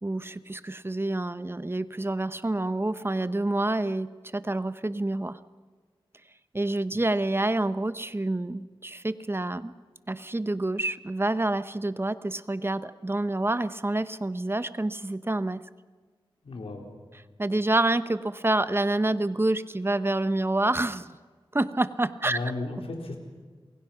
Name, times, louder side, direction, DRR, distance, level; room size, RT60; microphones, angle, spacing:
voice 1, 0.0-5.4 6.5-9.7 10.1-15.6 17.4-21.2 21.5-22.4, right 2 dB, 25° right, 13 dB, 0.9 m, -27 dB
voice 2, 16.4-16.8 22.2-23.2, left 2 dB, 85° left, 3 dB, 4.0 m, -34 dB
28.0 x 22.0 x 5.9 m, 1.4 s
wide cardioid pair, 70°, 9 cm